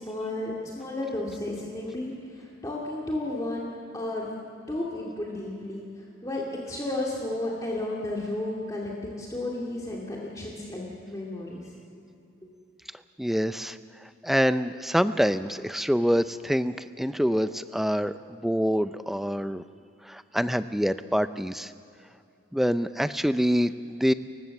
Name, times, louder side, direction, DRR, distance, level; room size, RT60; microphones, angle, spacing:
voice 1, 0.0-4.3 4.7-5.8 6.2-11.7, left 1 dB, 20° left, -3 dB, 2.2 m, -33 dB
voice 2, 13.2-13.8 14.2-19.6 20.1-21.7 22.5-24.1, equal, ahead, 12 dB, 0.4 m, -26 dB
29.5 x 15.5 x 7.1 m, 2.7 s
head